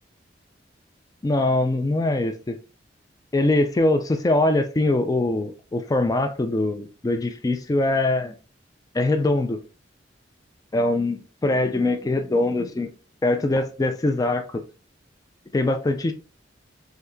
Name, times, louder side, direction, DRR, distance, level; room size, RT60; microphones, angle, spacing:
voice 1, 1.2-2.6 3.3-8.3 8.9-9.6 10.7-12.9 13.2-14.6 15.5-16.1, left 2 dB, 20° left, 0.4 m, -22 dB
3.5 x 2.7 x 2.5 m
head